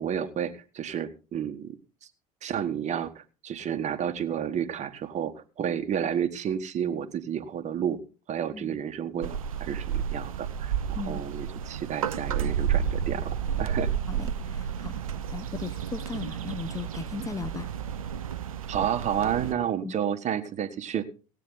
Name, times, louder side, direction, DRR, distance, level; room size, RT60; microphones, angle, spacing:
voice 1, 0.0-1.8 2.4-8.0 8.3-13.9 18.7-21.0, right 9 dB, 40° right, 1.5 m, -31 dB
sound 1, 9.2-19.5, right 8 dB, 75° right, 0.8 m, -31 dB
voice 2, 14.1-15.0 15.3-17.7 19.8-19.9, left 5 dB, 20° left, 1.0 m, -37 dB
18.0 x 9.1 x 4.0 m
figure-of-eight pair, 65°, 18 cm